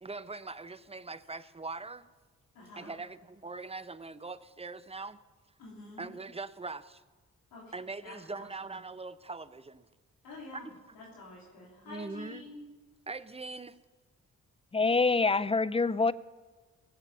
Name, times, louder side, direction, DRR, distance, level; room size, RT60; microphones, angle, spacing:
voice 1, 0.0-2.1 2.8-5.2 6.0-7.0 7.7-9.8 10.5-10.6 11.9-12.5 13.1-13.8, right 3 dB, 15° right, 14 dB, 0.7 m, -41 dB
voice 2, 2.5-2.9 5.6-6.1 7.5-7.7 8.0-8.5 10.2-12.6, left 3 dB, 85° left, -4 dB, 3.4 m, -48 dB
voice 3, 14.7-16.1, left 4 dB, 15° left, 18 dB, 0.5 m, -25 dB
17.0 x 7.4 x 7.2 m, 1.3 s
supercardioid pair, 45°, 34 cm